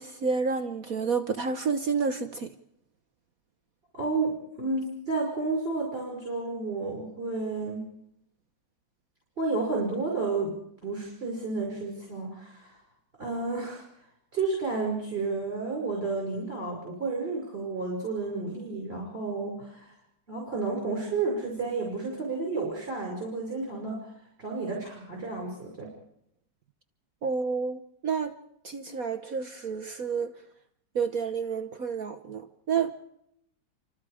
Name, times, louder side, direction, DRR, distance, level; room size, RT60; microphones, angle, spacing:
voice 1, 0.0-2.5 27.2-28.3 28.6-30.4 30.9-32.9, right 5 dB, 55° right, 8 dB, 1.4 m, -30 dB
voice 2, 3.9-4.3 4.6-7.8 9.4-12.8 13.2-13.8 14.3-19.9 20.3-24.1 24.4-25.9, right 3 dB, 30° right, -2 dB, 6.0 m, -31 dB
28.5 x 25.0 x 5.0 m, 0.76 s
omnidirectional pair, 2.0 m